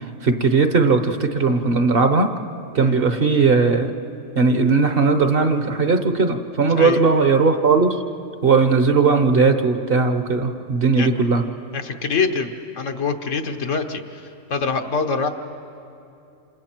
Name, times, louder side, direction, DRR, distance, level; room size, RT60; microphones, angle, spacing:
voice 1, 0.2-2.3 2.7-3.9 4.4-8.0 8.4-11.4, right 4 dB, 50° right, 7 dB, 1.1 m, -18 dB
voice 2, 11.7-12.5 12.8-15.3, left 5 dB, 70° left, 5 dB, 1.5 m, -24 dB
28.0 x 27.0 x 4.5 m, 2.7 s
omnidirectional pair, 1.3 m